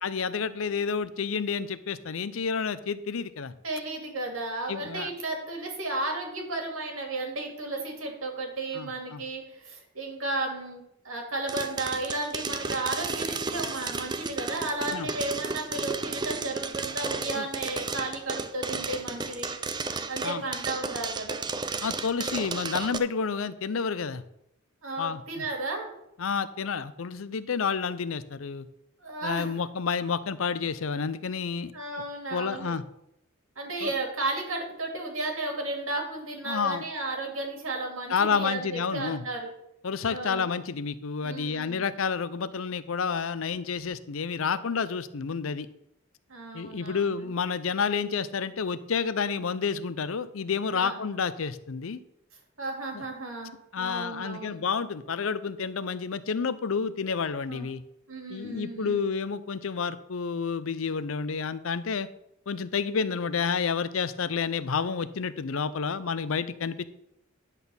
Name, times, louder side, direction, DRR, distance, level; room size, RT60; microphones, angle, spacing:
voice 1, 0.0-3.5 4.7-5.1 8.7-9.2 14.9-15.1 17.4-17.5 20.2-20.4 21.8-24.2 25.0-25.4 26.2-28.7 29.2-31.7 32.3-32.8 33.8-33.9 36.5-36.8 38.1-39.2 39.8-45.7 46.5-52.0 52.9-53.1 53.7-57.8 58.3-62.1 62.5-66.8, left 5 dB, 75° left, 15 dB, 0.6 m, -30 dB
voice 2, 3.6-19.5 20.1-21.4 24.8-25.9 29.0-29.5 31.7-32.8 33.6-39.5 40.0-40.5 41.2-41.8 46.3-47.3 50.7-51.0 52.6-54.6 57.5-57.7 58.1-59.0, right 2 dB, 80° right, 2 dB, 2.3 m, -34 dB
sound 1, 11.5-23.0, right 4 dB, 20° right, 0.4 m, -33 dB
10.5 x 4.1 x 7.0 m, 0.79 s
head